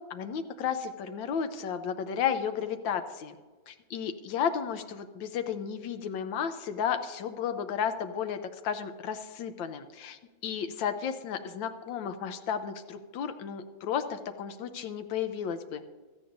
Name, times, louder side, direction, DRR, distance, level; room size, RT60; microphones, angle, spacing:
voice 1, 0.1-3.4 3.7-15.8, left 7 dB, 85° left, 8 dB, 1.4 m, -33 dB
16.0 x 13.5 x 2.6 m, 1.4 s
omnidirectional pair, 2.0 m